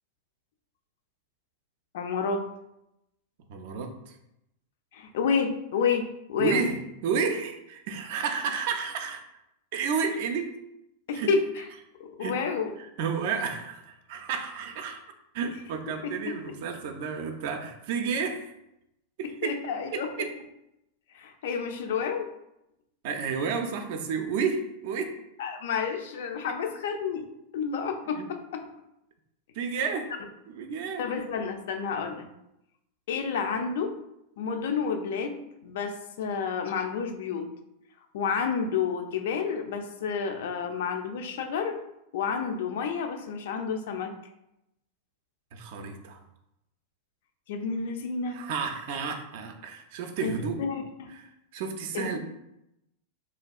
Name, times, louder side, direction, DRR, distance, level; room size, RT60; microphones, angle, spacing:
voice 1, 1.9-2.4 4.9-6.7 11.1-11.6 12.0-12.7 16.0-16.1 19.4-20.1 21.1-22.3 25.4-27.3 27.5-28.4 31.0-32.3 33.1-33.9 34.4-35.3 35.6-37.5 38.1-41.7 42.1-44.1 47.5-48.4 50.2-50.3 50.6-51.1 51.9-52.2, left 6 dB, 55° left, 5 dB, 0.3 m, -30 dB
voice 2, 3.5-4.2 6.4-9.2 9.7-10.6 11.1-11.3 12.2-12.4 12.8-15.0 15.3-18.5 19.2-19.5 19.9-20.3 23.0-25.1 28.1-28.3 29.5-30.1 30.5-31.1 45.5-46.2 48.3-50.6 51.1-52.2, right 5 dB, 50° right, 5 dB, 0.3 m, -31 dB
3.2 x 2.3 x 2.3 m, 0.85 s
figure-of-eight pair, 90°, 0 cm